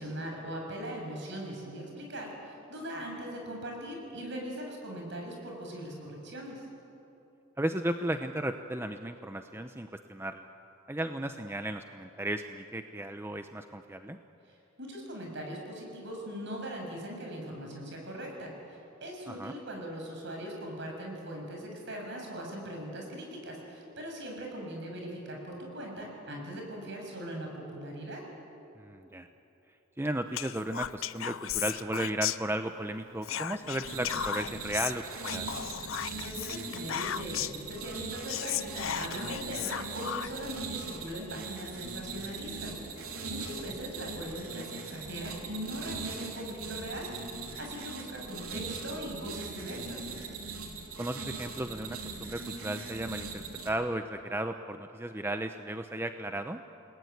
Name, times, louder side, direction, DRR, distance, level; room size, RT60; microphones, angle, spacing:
voice 1, 0.0-6.7 14.5-28.2 35.9-50.1, equal, 55° right, 1 dB, 7.2 m, -40 dB
voice 2, 7.6-10.5 10.9-14.2 19.3-19.5 28.8-29.3 30.0-35.5 51.0-56.6, right 1 dB, 10° right, 7 dB, 0.7 m, -35 dB
Whispering, 30.3-32.9 33.2-37.7 38.0-38.1 38.3-40.5, left 10 dB, 65° left, 0.6 m, -35 dB
sound 1, 33.8-53.7, right 4 dB, 85° right, 3.3 m, -40 dB
29.5 x 20.0 x 9.5 m, 3.0 s
head